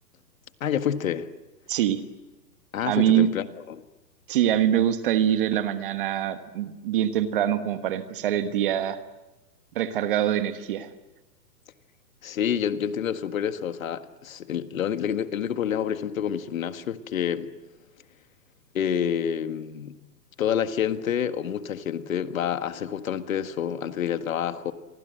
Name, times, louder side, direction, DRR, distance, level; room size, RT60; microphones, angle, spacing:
voice 1, 0.6-1.3 2.7-3.8 12.2-17.5 18.7-19.9 20.4-24.7, left 9 dB, 55° left, 1.8 m, -28 dB
voice 2, 1.7-2.0 2.8-3.3 4.3-9.0 9.7-10.9, right 11 dB, 30° right, 1.3 m, -24 dB
29.0 x 24.5 x 7.8 m
hypercardioid pair, 165°, 49 cm